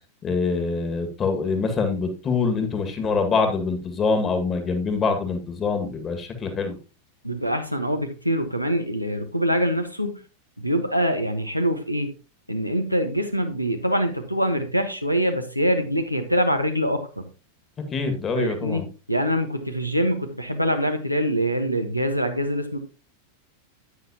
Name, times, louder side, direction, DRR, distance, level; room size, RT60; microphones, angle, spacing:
voice 1, 0.2-6.8 17.9-18.9, left 4 dB, 25° left, 6 dB, 1.9 m, -25 dB
voice 2, 7.2-10.2 10.6-12.1 12.5-17.2 18.4-18.8 19.1-22.8, equal, 90° right, 7 dB, 1.3 m, -24 dB
9.5 x 9.1 x 2.9 m, 0.32 s
figure-of-eight pair, 90°, 0 cm